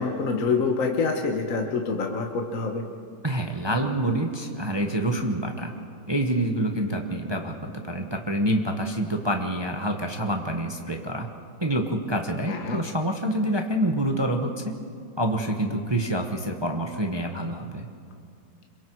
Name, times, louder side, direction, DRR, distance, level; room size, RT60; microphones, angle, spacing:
voice 1, 0.0-2.8 12.5-12.8, left 4 dB, 45° left, 2 dB, 1.6 m, -26 dB
voice 2, 3.2-5.7 6.1-11.3 11.6-14.7 15.2-17.9, right 1 dB, 20° right, 3 dB, 0.9 m, -27 dB
26.5 x 23.0 x 4.7 m, 2.3 s
omnidirectional pair, 2.2 m